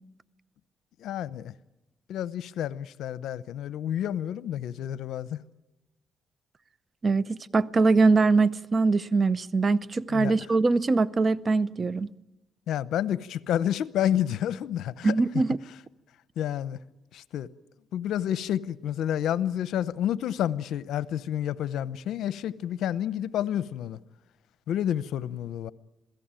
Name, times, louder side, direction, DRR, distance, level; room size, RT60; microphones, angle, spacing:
voice 1, 1.0-1.5 2.1-5.4 10.1-10.3 12.7-15.2 16.4-16.8 17.1-17.5 17.9-24.0 24.7-25.7, left 10 dB, 80° left, 0.8 m, -29 dB
voice 2, 7.0-12.1 15.0-15.6, right 3 dB, 35° right, 0.8 m, -23 dB
27.0 x 17.0 x 9.0 m
cardioid pair, 90°, 0 cm